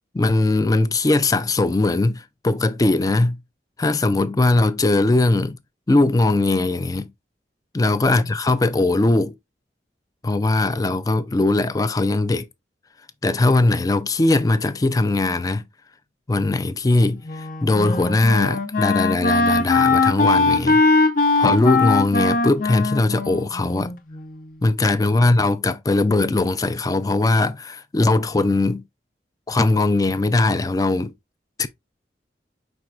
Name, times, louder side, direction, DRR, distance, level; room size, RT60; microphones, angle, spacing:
voice 1, 0.1-3.4 3.8-5.6 5.9-7.1 7.7-9.4 10.2-12.5 13.2-15.6 16.3-20.8 21.4-23.9 24.6-28.8 29.5-31.1 31.6-31.7, left 2 dB, 20° left, 0.4 m, -20 dB
Wind instrument woodwind instrument, 17.2-24.4, left 3 dB, 50° left, 0.7 m, -20 dB
5.1 x 4.4 x 2.4 m
head